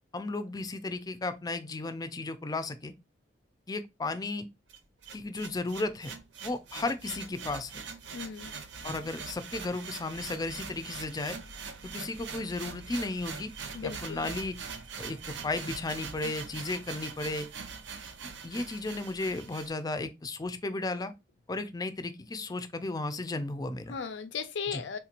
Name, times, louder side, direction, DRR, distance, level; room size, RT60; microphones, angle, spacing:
voice 1, 0.1-2.9 3.7-4.5 5.1-6.1 6.4-7.8 8.8-11.4 11.9-13.5 13.8-14.6 15.0-17.5 18.4-21.1 21.5-24.0 24.7-24.8, left 2 dB, 20° left, 0.4 m, -34 dB
sound 1, 4.7-19.7, right 5 dB, 80° right, 0.6 m, -42 dB
voice 2, 8.1-8.5 13.7-14.3 23.9-25.0, left 6 dB, 85° left, 0.6 m, -36 dB
3.6 x 2.9 x 2.4 m
head